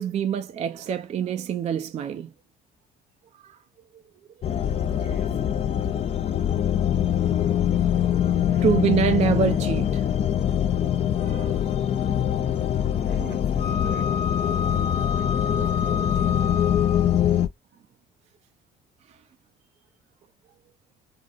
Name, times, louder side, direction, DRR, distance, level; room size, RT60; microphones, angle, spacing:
voice 1, 0.0-2.3 3.4-3.6 8.6-10.2 11.2-11.6, right 7 dB, 40° right, 0.4 m, -25 dB
sound 1, 4.4-17.5, left 10 dB, 40° left, 0.4 m, -23 dB
voice 2, 4.8-5.4 8.3-9.0 12.8-14.1 14.5-14.9 15.1-16.5 16.9-17.0 19.1-19.2 20.5-20.6, right 4 dB, 85° right, 1.4 m, -42 dB
Wind instrument woodwind instrument, 13.6-17.2, left 5 dB, 80° left, 0.9 m, -31 dB
3.8 x 2.0 x 2.4 m
cardioid pair, 110°, 17 cm